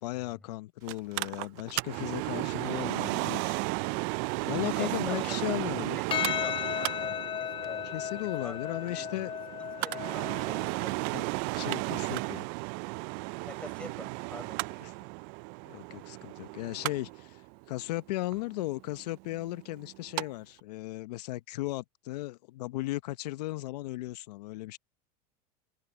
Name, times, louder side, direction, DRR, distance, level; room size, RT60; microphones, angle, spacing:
voice 1, 0.0-3.7 4.5-6.0 7.8-9.3 11.1-11.3 11.5-12.5 14.8-14.9 15.7-24.8, left 18 dB, 80° left, 0.9 m, -36 dB
Mechanical fan, 0.9-20.2 20.6-20.7, right 28 dB, 60° right, 0.4 m, -34 dB
voice 2, 4.8-7.9 8.2-8.6 8.9-9.2 9.8-11.0 13.5-14.7, left 1 dB, 5° left, 5.1 m, -46 dB
Percussion, 6.1-10.7, left 11 dB, 25° left, 0.4 m, -35 dB
supercardioid pair, 110°, 20 cm